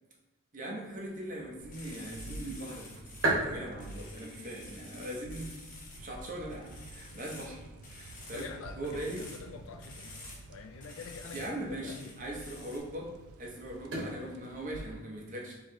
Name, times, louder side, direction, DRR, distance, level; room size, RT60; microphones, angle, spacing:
voice 1, 0.5-3.0 3.4-5.7 6.0-8.5 8.8-9.3 11.3-13.1 13.4-15.5, right 1 dB, 35° right, -2 dB, 0.8 m, -40 dB
sound 1, 0.8-14.9, right 2 dB, 60° right, 1.2 m, -42 dB
sound 2, 1.6-14.9, right 2 dB, 85° right, 0.4 m, -50 dB
sound 3, 1.7-3.3 3.8-6.0 6.5-7.6 7.8-8.6 8.8-9.4 9.8-10.4 10.8-11.6 11.9-12.8, left 3 dB, 35° left, 0.7 m, -50 dB
voice 2, 3.2-3.6 4.1-4.5 7.1-7.3 8.3-10.2 10.5-12.2, left 5 dB, 70° left, 6 dB, 0.4 m, -46 dB
4.5 x 3.1 x 3.0 m, 1.1 s
head